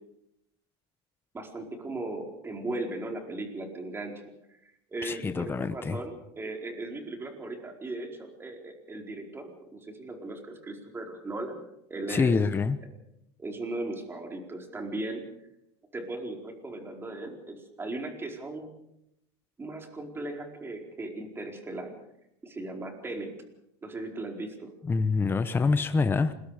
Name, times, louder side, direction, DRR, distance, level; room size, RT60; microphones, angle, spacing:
voice 1, 1.3-4.3 4.9-11.6 11.9-12.3 13.4-15.3 15.9-18.7 19.6-21.9 22.4-23.3 23.8-24.7, right 2 dB, 15° right, 3 dB, 4.6 m, -37 dB
voice 2, 5.0-6.0 12.1-12.8 24.9-26.3, left 4 dB, 15° left, 10 dB, 1.0 m, -26 dB
28.5 x 21.5 x 5.1 m, 0.81 s
supercardioid pair, 125°, 14 cm